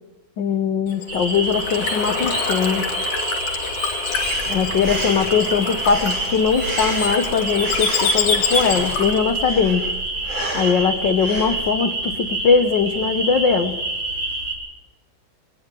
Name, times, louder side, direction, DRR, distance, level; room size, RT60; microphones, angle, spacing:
voice 1, 0.4-2.9 4.5-9.9 10.5-13.8, left 6 dB, 60° left, 8 dB, 1.2 m, -20 dB
Bird / Water, 0.9-9.3, left 5 dB, 80° left, 4.0 m, -26 dB
sound 1, 1.1-14.6, right 2 dB, 50° right, 6.1 m, -27 dB
Breathing, 4.1-11.7, right 2 dB, 15° right, 2.3 m, -33 dB
20.5 x 19.0 x 7.6 m, 1.1 s
omnidirectional pair, 3.4 m